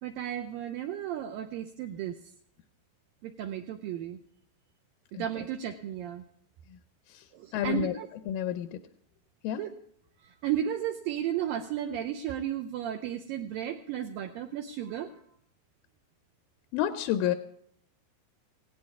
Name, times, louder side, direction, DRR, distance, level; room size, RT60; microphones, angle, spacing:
voice 1, 0.0-2.2 3.2-4.2 5.2-6.2 7.3-8.1 9.6-9.7 10.2-15.2, right 10 dB, 80° right, 5 dB, 2.2 m, -34 dB
voice 2, 7.5-7.9 8.3-8.8 9.4-9.6 16.7-17.3, left 11 dB, 80° left, 9 dB, 2.1 m, -29 dB
18.5 x 16.5 x 3.6 m, 0.67 s
omnidirectional pair, 4.7 m